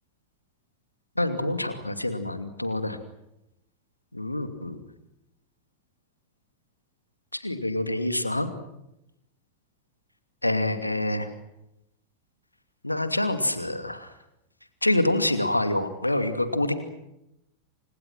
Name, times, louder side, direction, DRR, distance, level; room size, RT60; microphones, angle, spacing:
voice 1, 1.2-3.0 4.1-4.8 7.3-8.5 10.4-11.3 12.8-14.1 14.8-16.8, left 1 dB, 85° left, 9 dB, 2.6 m, -26 dB
29.5 x 26.0 x 6.1 m, 0.86 s
figure-of-eight pair, 90°, 0 cm